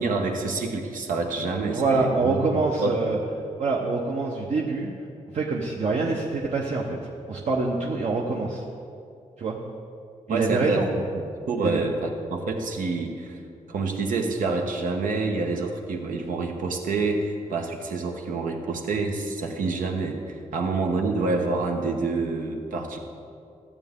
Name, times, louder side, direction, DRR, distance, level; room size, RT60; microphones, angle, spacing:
voice 1, 0.0-2.9 10.3-10.8 11.5-13.4 13.7-23.0, right 3 dB, 85° right, 3 dB, 1.1 m, -27 dB
voice 2, 1.6-3.2 3.6-4.9 5.3-6.9 7.3-8.6 9.4-9.6 10.3-10.9 11.6-11.8, right 3 dB, 55° right, -2 dB, 0.9 m, -25 dB
14.0 x 8.2 x 3.7 m, 2.5 s
cardioid pair, 105°, 14 cm